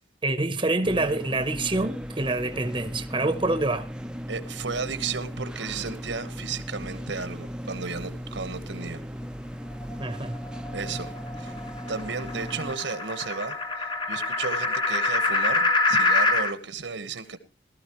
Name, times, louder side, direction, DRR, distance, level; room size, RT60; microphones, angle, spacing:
voice 1, 0.2-3.9 10.0-10.4, right 2 dB, 25° right, 0.9 m, -26 dB
sound 1, 0.8-12.8, equal, 5° right, 0.6 m, -37 dB
voice 2, 4.3-9.0 10.7-11.5 11.9-17.4, right 5 dB, 75° right, 1.3 m, -34 dB
sound 2, 9.8-16.5, left 3 dB, 25° left, 1.0 m, -26 dB
17.0 x 13.5 x 3.1 m
head